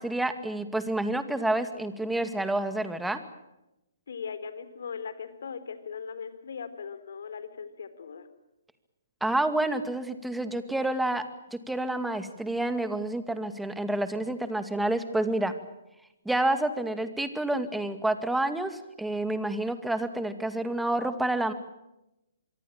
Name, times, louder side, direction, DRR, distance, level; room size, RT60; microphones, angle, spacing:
voice 1, 0.0-3.2 9.2-11.2 11.7-15.5 16.3-21.5, right 1 dB, 5° right, 10 dB, 2.2 m, -29 dB
voice 2, 4.1-8.3, left 6 dB, 65° left, 11 dB, 3.7 m, -39 dB
25.5 x 23.5 x 8.9 m, 0.91 s
figure-of-eight pair, 135°, 0 cm